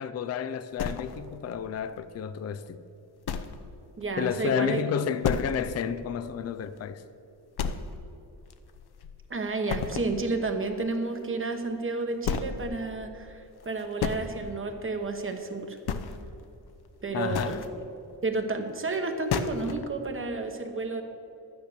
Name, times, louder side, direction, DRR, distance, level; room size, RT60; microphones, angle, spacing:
voice 1, 0.0-2.8 4.2-7.0 17.1-17.6, left 8 dB, 40° left, 0.4 m, -31 dB
sound 1, 0.8-1.5 2.0-2.1 2.5-2.6 3.3-3.7 4.0-4.1 4.5-4.6 5.2-5.8 6.1-6.2 6.7-6.8 7.6-8.2 8.5-9.3 9.7-10.2 11.5-11.6 12.2-12.6 13.6-14.2 15.2-15.5 15.8-16.4 17.1-17.7 18.9-19.0 19.3-19.8, left 6 dB, 65° left, 0.8 m, -32 dB
voice 2, 4.0-4.8 9.3-15.8 17.0-17.6 18.2-21.0, right 3 dB, 30° right, 1.0 m, -31 dB
12.0 x 9.5 x 6.6 m
wide cardioid pair, 150°, 42 cm